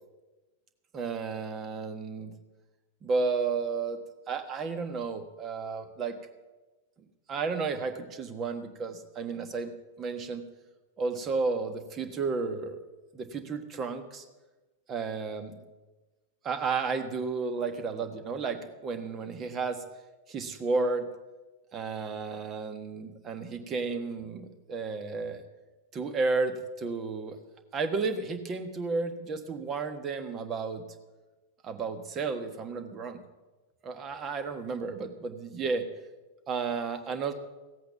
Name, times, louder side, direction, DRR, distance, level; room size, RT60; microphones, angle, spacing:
voice 1, 0.9-2.3 3.0-4.0 4.3-6.2 7.3-10.4 11.0-12.8 13.1-14.2 14.9-15.5 16.4-19.8 20.3-21.1 21.7-25.4 25.9-27.4 27.7-30.8 31.6-33.2 33.8-35.9 36.5-37.3, right 4 dB, 30° right, 9 dB, 1.4 m, -32 dB
16.0 x 8.5 x 7.0 m, 1.2 s
figure-of-eight pair, 90°, 0 cm